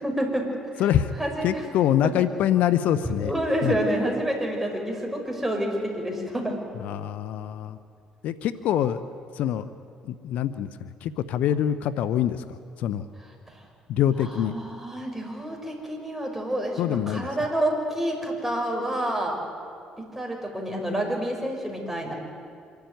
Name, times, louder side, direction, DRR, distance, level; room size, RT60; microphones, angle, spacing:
voice 1, 0.0-0.5 0.7-0.9 1.2-1.7 3.2-6.5 14.4-19.4 20.0-22.1, right 1 dB, 5° right, 0 dB, 5.9 m, -28 dB
voice 2, 1.4-3.3 3.6-3.7 6.8-7.8 8.2-9.1 9.3-9.6 10.0-12.4 12.8-13.0 13.9-14.6 16.8-17.3, left 10 dB, 70° left, 13 dB, 0.7 m, -25 dB
25.5 x 12.0 x 9.3 m, 2.3 s
supercardioid pair, 65°, 3 cm